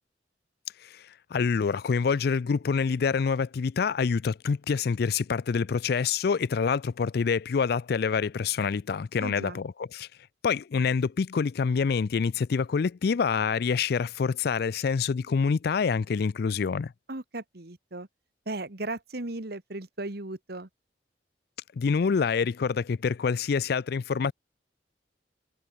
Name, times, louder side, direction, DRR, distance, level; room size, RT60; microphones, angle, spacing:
voice 1, 0.8-10.1 10.4-16.9 21.7-24.3, left 5 dB, 55° left, 0.4 m, -26 dB
voice 2, 9.2-9.6 17.1-18.1 18.5-20.7, right 2 dB, 60° right, 1.8 m, -36 dB
head